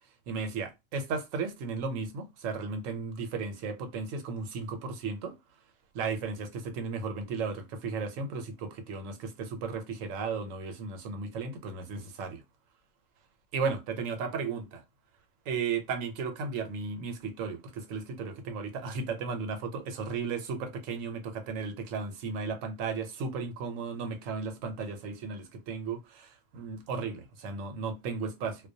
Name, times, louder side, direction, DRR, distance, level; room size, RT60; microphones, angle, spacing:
voice 1, 0.3-5.4 5.9-12.4 13.5-14.8 15.5-28.7, right 5 dB, 90° right, 1.0 m, -35 dB
2.2 x 2.1 x 2.6 m
omnidirectional pair, 1.3 m